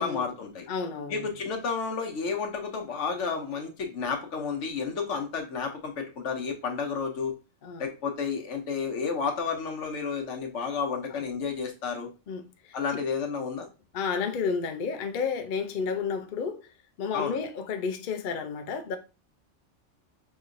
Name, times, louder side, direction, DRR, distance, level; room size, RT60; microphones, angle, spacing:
voice 1, 0.0-0.6 1.1-7.3 7.8-12.1 12.7-13.7 17.1-17.4, left 5 dB, 70° left, 1.1 m, -31 dB
voice 2, 0.7-1.3 7.6-7.9 12.3-13.0 13.9-16.7 17.0-19.0, left 5 dB, 55° left, 0.6 m, -31 dB
5.3 x 2.9 x 2.5 m
omnidirectional pair, 1.3 m